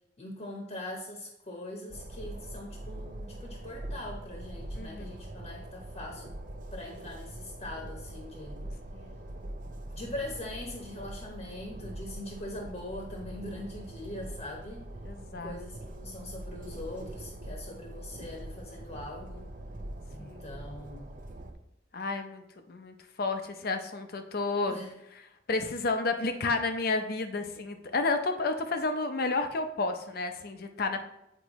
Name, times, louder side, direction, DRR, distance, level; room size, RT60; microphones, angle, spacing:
voice 1, 0.2-6.3 6.7-8.6 9.9-14.9 15.4-19.5 20.1-21.1 24.7-24.9, left 1 dB, 35° left, 0 dB, 1.0 m, -42 dB
Train, 1.9-21.5, right 1 dB, 45° right, 0.6 m, -43 dB
voice 2, 4.8-5.1 8.9-9.3 15.0-15.5 20.2-20.5 21.9-22.4 22.7-24.8 25.5-31.0, left 3 dB, 50° left, 7 dB, 0.6 m, -31 dB
7.9 x 4.5 x 3.0 m, 0.85 s
head